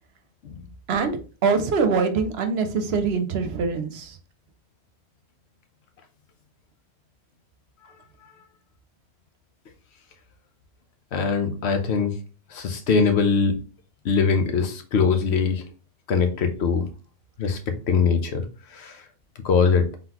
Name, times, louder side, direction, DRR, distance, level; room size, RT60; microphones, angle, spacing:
voice 1, 0.9-4.2, right 5 dB, 70° right, 8 dB, 0.9 m, -24 dB
voice 2, 11.1-12.2 12.5-13.6 14.0-15.6 16.1-16.9 17.4-18.5 18.7-19.0 19.4-19.9, left 5 dB, 80° left, 7 dB, 1.0 m, -22 dB
3.8 x 3.8 x 2.9 m, 0.35 s
omnidirectional pair, 1.1 m